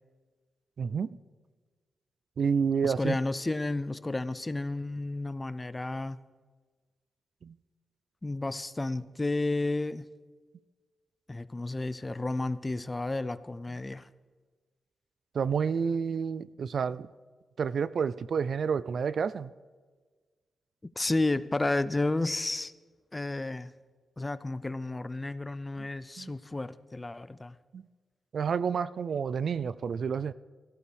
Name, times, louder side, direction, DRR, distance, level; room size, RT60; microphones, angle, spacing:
voice 1, 0.8-1.2 2.4-3.2 7.4-7.5 15.3-17.1 17.6-19.5 26.2-26.3 27.7-27.8 28.3-30.3, right 6 dB, 65° right, 0.3 m, -29 dB
voice 2, 2.8-6.2 8.2-10.1 11.3-14.1 21.0-22.7 23.1-23.7 24.2-27.5, left 2 dB, 20° left, 0.5 m, -32 dB
16.5 x 14.5 x 3.4 m
cardioid pair, 90°, 0 cm